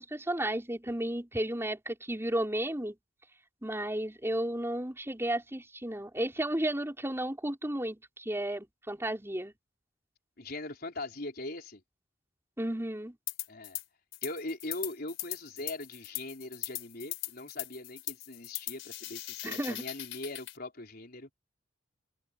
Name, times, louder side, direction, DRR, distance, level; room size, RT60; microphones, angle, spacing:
voice 1, 0.0-3.0 3.6-9.5 12.6-13.2 19.4-19.8, right 1 dB, 15° right, 5.0 m, -33 dB
voice 2, 10.4-11.8 13.5-13.8 14.2-21.3, left 2 dB, 50° left, 4.3 m, -41 dB
sound 1, 13.3-13.8 14.1-20.6, left 16 dB, 75° left, 4.0 m, -40 dB
head